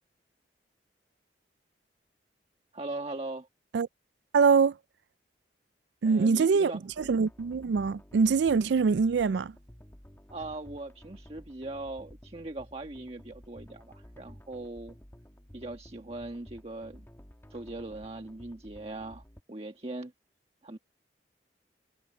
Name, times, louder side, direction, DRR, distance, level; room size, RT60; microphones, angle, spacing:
voice 1, 2.7-3.5 6.0-7.2 10.3-15.0 15.5-17.1 17.5-20.1 20.6-20.8, right 2 dB, 35° right, 1.4 m, -40 dB
voice 2, 4.3-4.7 6.0-6.7 7.0-9.5, right 5 dB, 80° right, 0.4 m, -24 dB
sound 1, 6.9-19.4, equal, 15° left, 1.4 m, -52 dB
head